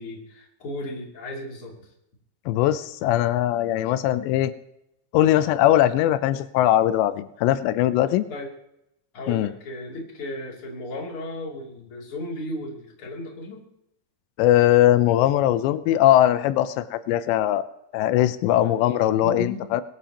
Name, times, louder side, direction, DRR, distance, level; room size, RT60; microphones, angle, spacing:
voice 1, 0.0-1.9 8.3-8.5 9.1-13.6 18.5-18.7 19.2-19.7, left 1 dB, 35° left, -1 dB, 3.2 m, -35 dB
voice 2, 2.5-4.5 5.1-8.2 9.3-9.5 14.4-17.7 17.9-19.8, left 13 dB, 90° left, 13 dB, 2.9 m, -20 dB
22.0 x 13.0 x 2.9 m, 0.81 s
omnidirectional pair, 4.9 m